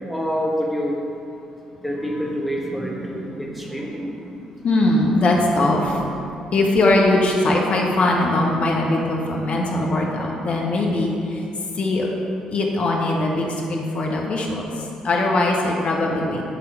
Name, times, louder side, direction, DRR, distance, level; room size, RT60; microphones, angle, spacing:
voice 1, 0.1-1.0 1.8-4.5, equal, ahead, -3 dB, 1.7 m, -27 dB
voice 2, 4.6-6.0 6.5-11.4 11.8-12.1 12.5-14.6 15.0-16.4, left 2 dB, 45° left, -1 dB, 1.2 m, -20 dB
10.5 x 3.7 x 4.5 m, 2.7 s
hypercardioid pair, 45°, 3 cm